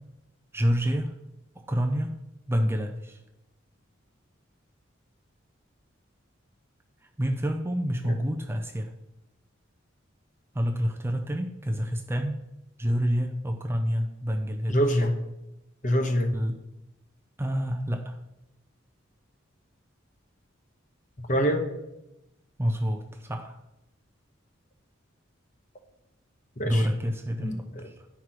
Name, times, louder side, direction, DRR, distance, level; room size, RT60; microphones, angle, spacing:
voice 1, 0.5-1.1 1.6-2.2 2.5-3.2 7.2-8.9 10.5-12.4 12.8-14.8 16.3-16.6 17.4-18.2 22.6-23.6 26.6-27.5 27.8-27.9, equal, 10° right, 3 dB, 0.5 m, -28 dB
voice 2, 14.7-15.1 15.8-16.3 21.2-21.6 26.6-26.9 27.4-27.9, equal, 40° left, 4 dB, 1.1 m, -25 dB
10.0 x 4.7 x 5.8 m, 0.92 s
head